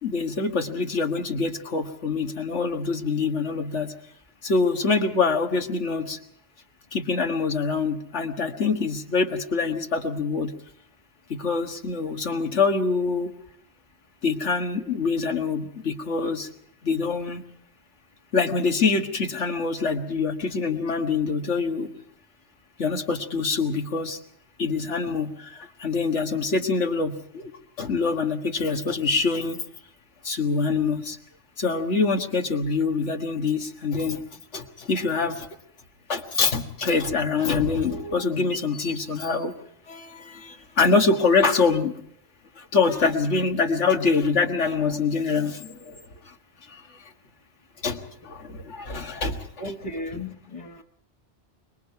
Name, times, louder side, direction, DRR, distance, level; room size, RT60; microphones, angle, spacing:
voice 1, 0.0-3.9 4.4-6.2 6.9-10.5 11.3-13.3 14.2-16.5 16.8-17.4 18.3-21.9 22.8-24.2 24.6-27.5 27.8-29.6 30.2-31.2 31.6-34.2 34.5-35.5 36.1-39.5 39.9-41.9 42.6-46.3 46.6-47.0 47.8-49.5 50.1-50.2, left 4 dB, 85° left, 5 dB, 2.0 m, -25 dB
voice 2, 49.6-50.8, left 1 dB, 30° left, 0 dB, 1.2 m, -35 dB
25.5 x 23.0 x 4.7 m, 0.71 s
omnidirectional pair, 1.2 m